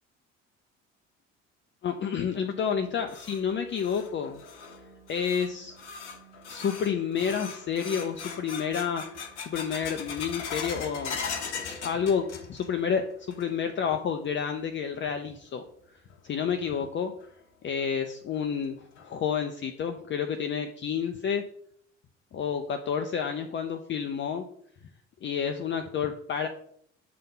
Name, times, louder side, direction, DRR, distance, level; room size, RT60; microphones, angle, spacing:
voice 1, 1.8-4.4 5.1-5.8 6.5-9.2 9.5-15.6 16.2-17.1 17.6-18.8 19.0-21.4 22.3-24.4 25.2-26.5, left 7 dB, 30° left, 6 dB, 0.7 m, -30 dB
sound 1, 2.7-12.8 13.1-13.7 14.1-14.2 14.9-15.0 16.7-16.8 17.2-17.3 17.8-17.9 18.4-18.5 19.0-19.4, left 5 dB, 75° left, 1.0 m, -40 dB
7.6 x 3.6 x 5.5 m, 0.67 s
figure-of-eight pair, 55°, 35 cm